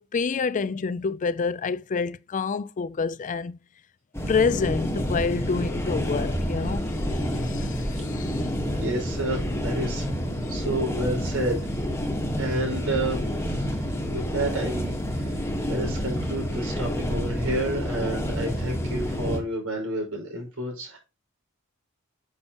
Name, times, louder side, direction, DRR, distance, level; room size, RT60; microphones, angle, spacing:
voice 1, 0.0-3.6 4.3-8.5, left 5 dB, 35° left, 0.4 m, -28 dB
sound 1, 4.1-19.4, equal, 10° left, 1.4 m, -28 dB
voice 2, 8.8-10.1 10.5-11.6 12.4-13.8 14.1-15.4 15.7-21.0, right 1 dB, 85° right, 5.3 m, -30 dB
9.7 x 6.1 x 2.9 m
head